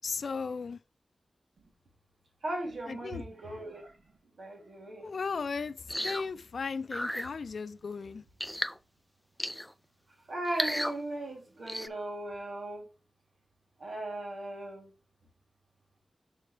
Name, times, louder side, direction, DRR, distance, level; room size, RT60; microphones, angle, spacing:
voice 1, 0.0-0.8 2.9-3.2 5.0-8.2, left 5 dB, 75° left, 0.4 m, -36 dB
voice 2, 2.4-4.0 4.4-5.1 10.3-12.9 13.8-14.9, right 1 dB, 80° right, 2.8 m, -37 dB
sound 1, 5.9-6.3 6.9-7.3 8.4-8.8 9.4-9.7 10.5-11.0 11.7-11.9, equal, 5° left, 0.3 m, -33 dB
6.6 x 6.3 x 3.3 m
wide cardioid pair, 80°, 0 cm